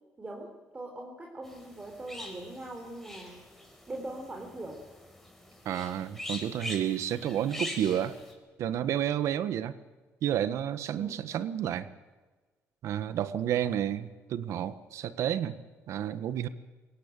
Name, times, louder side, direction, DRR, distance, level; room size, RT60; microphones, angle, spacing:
voice 1, 0.2-3.4 3.9-4.8 10.9-11.1 13.6-13.7, right 1 dB, 20° right, 1 dB, 4.1 m, -41 dB
sound 1, 1.4-8.3, left 1 dB, 5° left, 5.0 m, -43 dB
voice 2, 5.6-8.2 8.6-9.7 10.2-11.9 12.8-15.5 15.9-16.5, right 10 dB, 70° right, 13 dB, 1.4 m, -30 dB
22.5 x 17.5 x 9.0 m, 1.3 s
cardioid pair, 105°, 5 cm